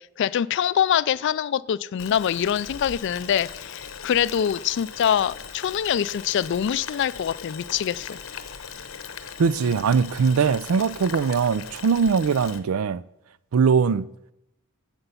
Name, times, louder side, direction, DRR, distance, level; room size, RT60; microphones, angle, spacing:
voice 1, 0.2-8.2, left 9 dB, 55° left, 0.3 m, -24 dB
Boiling, 2.0-12.6, left 6 dB, 80° left, 0.9 m, -39 dB
voice 2, 9.4-13.0 13.5-14.1, right 5 dB, 85° right, 0.4 m, -21 dB
9.8 x 7.9 x 6.9 m
head